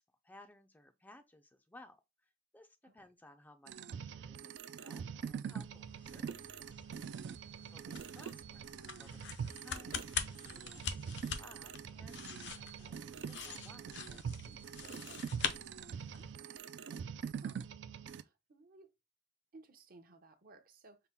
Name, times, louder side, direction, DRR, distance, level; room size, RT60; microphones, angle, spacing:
voice 1, 0.2-6.8 7.6-10.2 10.5-15.2, left 1 dB, 10° left, 0.3 m, -60 dB
sound 1, 3.7-18.2, right 7 dB, 80° right, 0.3 m, -44 dB
sound 2, 5.6-16.4, left 7 dB, 80° left, 0.5 m, -45 dB
voice 2, 7.4-7.8 12.8-13.1 16.1-16.7 17.4-17.6 18.2-18.9 19.5-21.0, right 3 dB, 55° right, 0.7 m, -60 dB
5.6 x 2.2 x 3.6 m
head